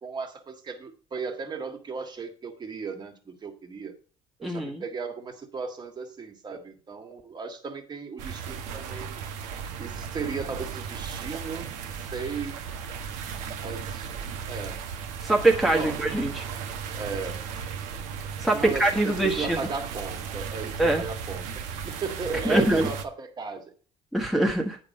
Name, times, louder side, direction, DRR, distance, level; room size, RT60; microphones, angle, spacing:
voice 1, 0.0-3.9 4.4-9.2 9.8-12.6 13.6-14.1 14.5-14.8 15.7-16.0 16.9-17.4 18.4-23.7, right 5 dB, 35° right, 5 dB, 1.8 m, -36 dB
voice 2, 4.4-4.8 15.2-16.4 18.4-19.6 20.8-21.0 22.4-22.9 24.1-24.8, right 1 dB, ahead, 0 dB, 1.2 m, -23 dB
sound 1, 8.2-23.0, right 7 dB, 90° right, 1.0 m, -36 dB
9.1 x 5.3 x 5.3 m, 0.41 s
cardioid pair, 100°, 13 cm